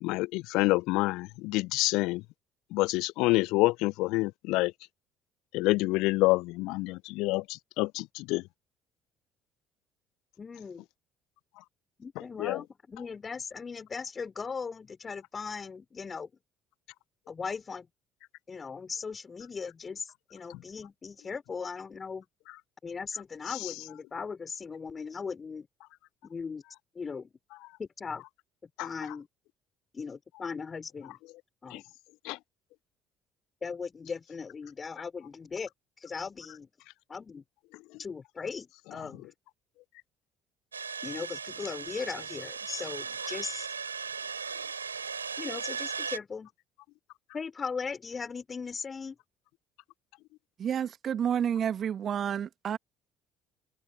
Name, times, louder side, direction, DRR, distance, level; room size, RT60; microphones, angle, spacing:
voice 1, 0.0-2.2 2.7-4.7 5.5-8.4 12.4-12.6 28.8-28.9 31.7-31.8 32.2-32.4, left 21 dB, 65° left, 1.0 m, -27 dB
voice 2, 10.4-10.9 12.0-16.3 17.3-17.9 18.5-22.2 22.8-25.7 26.2-26.6 26.9-27.3 27.8-28.2 28.8-29.3 29.9-31.2 31.6-31.8 33.6-35.7 36.0-36.7 37.1-37.4 38.0-39.3 41.0-43.7 45.4-46.5 47.3-49.2, left 5 dB, 30° left, 5.9 m, -38 dB
sound 1, 40.7-46.2, right 6 dB, 85° right, 7.9 m, -37 dB
voice 3, 50.6-52.8, right 8 dB, 45° right, 2.3 m, -30 dB
open air
figure-of-eight pair, 55°, 0 cm